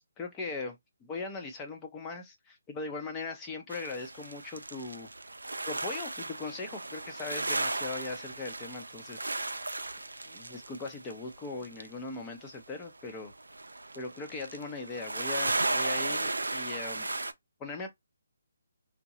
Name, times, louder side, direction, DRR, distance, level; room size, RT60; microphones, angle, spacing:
voice 1, 0.2-5.1 5.7-9.5 10.2-13.3 13.9-17.1 17.6-17.9, left 3 dB, 15° left, 0.7 m, -39 dB
sound 1, 3.7-11.9 12.8-12.9 13.2-17.3, right 2 dB, 80° right, 0.4 m, -35 dB
2.7 x 2.1 x 3.0 m
figure-of-eight pair, 145°, 0 cm